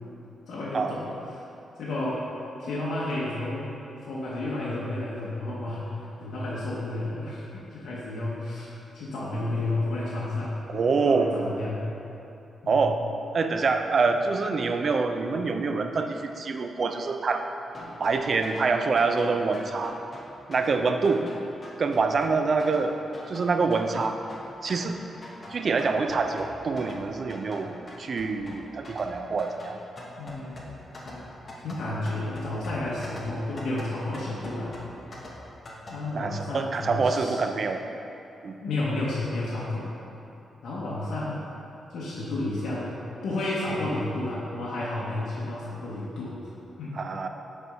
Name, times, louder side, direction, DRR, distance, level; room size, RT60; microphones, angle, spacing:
voice 1, 0.5-1.4 1.8-2.2 2.6-3.7 4.0-10.6 11.0-11.9 12.6-12.8 30.2-30.7 31.0-31.3 31.6-34.8 35.9-37.4 38.6-39.9 40.6-41.4 41.9-42.9 43.2-46.4 46.8-47.0, left 2 dB, 80° left, -7 dB, 1.0 m, -31 dB
voice 2, 10.7-11.3 12.7-13.0 13.3-17.5 18.0-20.0 20.5-21.2 21.8-22.9 23.3-24.2 24.6-25.0 25.5-29.8 36.1-37.8 38.4-38.6 46.9-47.3, right 4 dB, 45° right, 6 dB, 0.4 m, -26 dB
sound 1, 17.7-36.0, left 1 dB, 35° left, 0.9 m, -44 dB
6.8 x 4.3 x 4.8 m, 2.9 s
wide cardioid pair, 125°, 0 cm